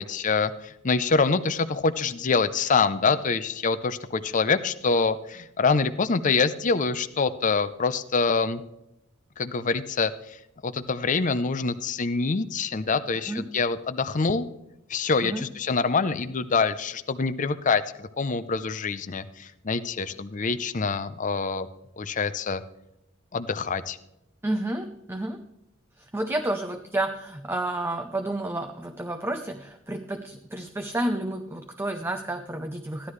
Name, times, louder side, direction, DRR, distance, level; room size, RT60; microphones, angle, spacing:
voice 1, 0.0-8.6 9.4-10.1 10.6-14.4 14.9-21.7 22.0-22.6 23.3-24.0, left 4 dB, 40° left, 11 dB, 0.6 m, -25 dB
voice 2, 24.4-25.4 26.0-33.1, right 1 dB, 10° right, 6 dB, 0.6 m, -30 dB
15.5 x 11.0 x 3.2 m, 0.85 s
head